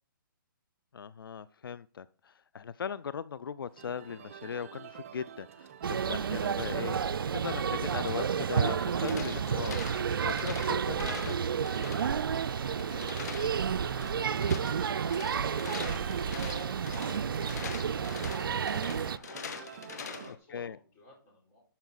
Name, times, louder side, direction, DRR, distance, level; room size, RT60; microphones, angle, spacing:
voice 1, 0.9-7.0 7.3-11.4 20.5-20.8, left 7 dB, 80° left, 17 dB, 0.4 m, -39 dB
sound 1, 3.7-20.3, right 8 dB, 35° right, 0.7 m, -50 dB
sound 2, 5.8-19.2, right 7 dB, 75° right, 0.4 m, -31 dB
sound 3, 8.7-20.4, left 7 dB, 50° left, 1.3 m, -44 dB
voice 2, 12.3-21.6, left 1 dB, 15° left, -3 dB, 4.0 m, -57 dB
11.5 x 5.6 x 4.0 m, 0.40 s
hypercardioid pair, 160°, 12 cm